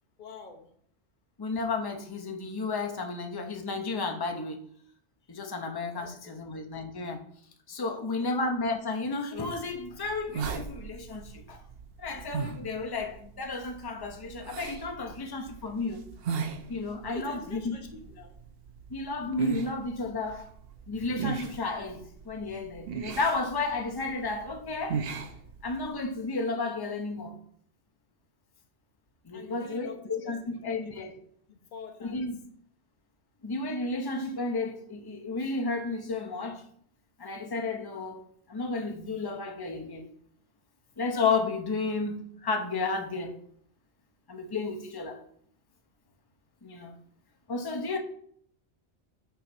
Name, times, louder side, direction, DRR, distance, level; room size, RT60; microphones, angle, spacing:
voice 1, 0.2-0.7 5.2-5.3 5.9-6.4 7.9-8.3 17.0-18.3 29.3-31.1 31.5-32.3, left 4 dB, 45° left, 4 dB, 1.0 m, -46 dB
voice 2, 1.4-4.6 5.3-7.2 7.7-11.6 12.0-16.0 16.7-17.8 18.9-20.5 20.9-25.0 25.6-27.4 29.2-31.2 32.0-32.4 33.4-36.6 37.2-40.1 41.0-43.4 44.3-45.2 46.6-46.9 47.5-48.0, left 3 dB, 25° left, 3 dB, 0.8 m, -32 dB
sound 1, 9.5-26.1, right 6 dB, 60° right, 0.8 m, -39 dB
5.8 x 3.9 x 6.1 m, 0.64 s
omnidirectional pair, 1.2 m